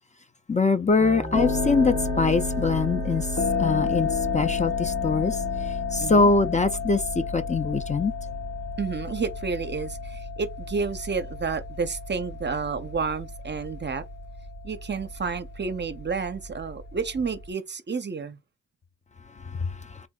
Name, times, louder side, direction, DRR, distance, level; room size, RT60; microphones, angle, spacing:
voice 1, 0.5-3.3 3.6-4.1 4.3-5.4 5.9-8.1 19.6-19.7, left 3 dB, 25° left, 0.5 m, -23 dB
sound 1, 1.0-17.5, left 4 dB, 70° left, 1.8 m, -31 dB
voice 2, 6.0-6.3 8.8-14.1 14.6-18.4, right 5 dB, 40° right, 0.6 m, -30 dB
3.5 x 2.0 x 3.6 m
cardioid pair, 75°, 29 cm